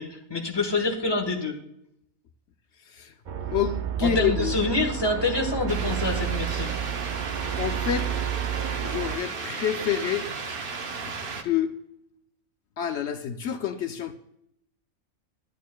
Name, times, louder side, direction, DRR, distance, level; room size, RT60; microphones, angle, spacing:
voice 1, 0.0-1.6 4.0-6.7, left 2 dB, 20° left, 2 dB, 1.2 m, -26 dB
sound 1, 3.3-9.2, right 9 dB, 80° right, 0.4 m, -30 dB
voice 2, 3.5-4.5 7.6-8.1 8.8-10.3 11.4-11.7 12.8-14.1, left 9 dB, 65° left, 8 dB, 0.8 m, -27 dB
sound 2, 5.7-11.4, right 4 dB, 45° right, 0.9 m, -34 dB
11.0 x 10.5 x 2.2 m, 0.77 s
omnidirectional pair, 1.5 m